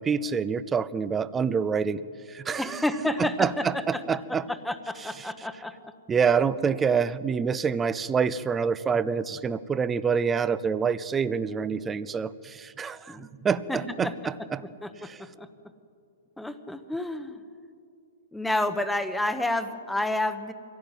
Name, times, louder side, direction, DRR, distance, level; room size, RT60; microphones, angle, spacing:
voice 1, 0.0-2.0 2.3-2.8 3.4-4.4 6.1-13.2 13.4-14.1 14.5-14.6, right 6 dB, 15° right, 15 dB, 0.7 m, -26 dB
voice 2, 2.6-5.9 13.1-13.3 13.7-14.2 14.8-15.5 16.4-17.4 18.3-20.5, left 1 dB, 5° left, 9 dB, 1.2 m, -30 dB
23.5 x 16.5 x 9.2 m, 2.4 s
hypercardioid pair, 140°, 0 cm